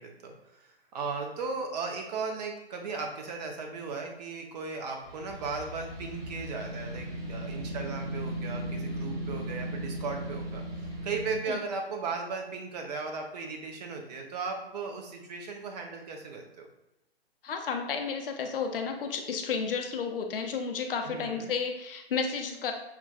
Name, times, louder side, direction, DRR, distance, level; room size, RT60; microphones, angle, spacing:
voice 1, 0.0-10.6 11.0-16.7 21.0-21.5, right 4 dB, 40° right, 2 dB, 0.8 m, -36 dB
sound 1, 5.0-11.4, equal, 15° right, 1.4 m, -37 dB
voice 2, 17.4-22.7, left 5 dB, 60° left, 4 dB, 0.7 m, -32 dB
7.0 x 2.4 x 2.3 m, 0.95 s
figure-of-eight pair, 125°, 31 cm